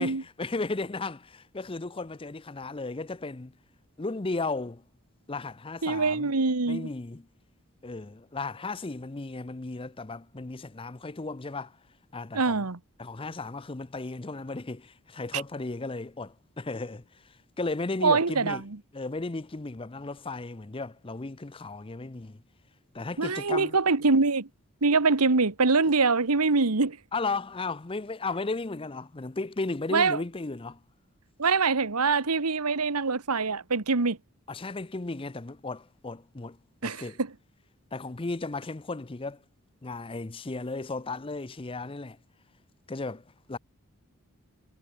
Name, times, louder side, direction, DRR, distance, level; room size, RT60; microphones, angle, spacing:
voice 1, 0.0-3.5 4.0-4.8 5.3-6.3 6.7-7.3 7.8-11.8 12.1-12.6 13.0-18.6 18.9-22.4 22.9-23.8 27.1-30.8 34.5-37.2 37.9-39.4 39.8-42.2 42.9-43.6, left 3 dB, 25° left, 0.6 m, -35 dB
voice 2, 5.8-6.9 12.3-12.8 18.0-18.6 23.2-24.5 24.8-27.0 29.9-30.2 31.4-34.2 36.8-37.0, right 4 dB, 90° right, 1.4 m, -24 dB
head